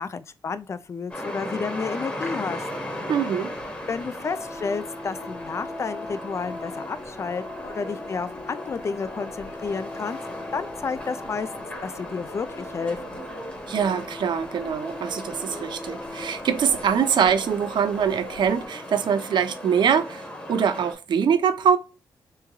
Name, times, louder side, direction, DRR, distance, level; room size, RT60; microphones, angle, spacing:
voice 1, 0.0-2.7 3.9-10.2 10.5-11.5 11.8-13.2, left 5 dB, 35° left, 0.4 m, -31 dB
sound 1, 1.1-20.9, equal, 15° left, 0.9 m, -37 dB
voice 2, 3.1-3.5 13.7-21.8, right 7 dB, 65° right, 0.5 m, -23 dB
sound 2, 3.5-18.7, left 2 dB, 75° left, 1.2 m, -41 dB
3.4 x 3.2 x 2.2 m
wide cardioid pair, 130°, 8 cm